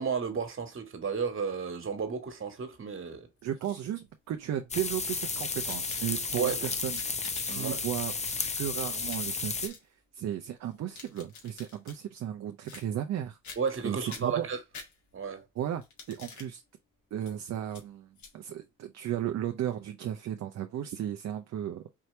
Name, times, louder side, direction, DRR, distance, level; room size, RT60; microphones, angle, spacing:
voice 1, 0.0-3.3 6.3-6.7 7.5-7.8 13.6-14.6 15.1-15.4, right 6 dB, 45° right, 1.8 m, -32 dB
sound 1, 3.4-4.1 4.8-6.4 6.8-7.7 8.1-9.3 9.6-9.8 10.7-12.0 12.6-13.2 13.4-13.8 14.1-15.3 15.8-16.5 17.2-17.3 17.7-17.8 18.2-18.3, left 5 dB, 70° left, 2.0 m, -48 dB
voice 2, 3.4-7.0 7.5-8.1 8.6-13.4 13.8-14.5 15.6-15.8 16.1-16.6 17.1-18.1 18.3-21.9, right 10 dB, 60° right, 0.7 m, -35 dB
sound 2, 4.7-9.7, left 4 dB, 20° left, 0.7 m, -33 dB
4.7 x 2.8 x 3.2 m
cardioid pair, 90°, 30 cm